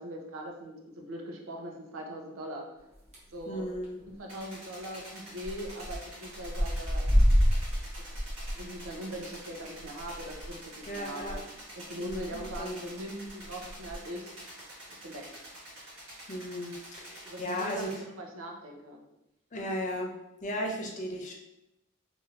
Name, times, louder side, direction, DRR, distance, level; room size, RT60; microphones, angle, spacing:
voice 1, 0.0-2.7 3.3-3.7 4.2-7.1 8.5-11.4 11.8-14.3 14.9-15.2 17.2-19.0, right 1 dB, 80° right, 1 dB, 0.6 m, -41 dB
sound 1, 2.9-3.4 3.7-4.0 4.3-4.4 4.6-4.7 5.4-6.0 6.3-11.4 11.7-11.8 12.1-12.6 13.3-14.0, equal, 35° right, 0.9 m, -28 dB
voice 2, 3.5-3.9 10.9-11.4 12.0-12.8 16.3-17.9 19.5-20.1 20.4-21.3, equal, 35° left, 1 dB, 0.4 m, -35 dB
sound 2, 4.3-17.9, right 1 dB, 65° right, 1.4 m, -47 dB
3.1 x 2.7 x 2.5 m, 0.88 s
head